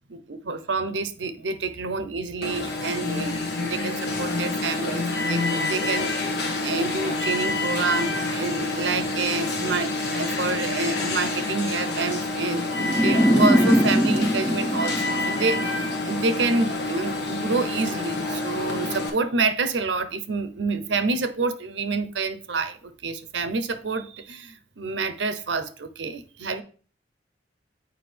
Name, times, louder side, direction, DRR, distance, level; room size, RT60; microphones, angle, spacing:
voice 1, 0.1-6.3 6.6-26.6, right 3 dB, 80° right, 0.7 m, -28 dB
Alarm, 2.4-19.1, left 2 dB, 65° left, 1.3 m, -27 dB
sound 1, 12.7-15.9, equal, 5° left, 0.4 m, -22 dB
8.1 x 4.8 x 3.4 m
head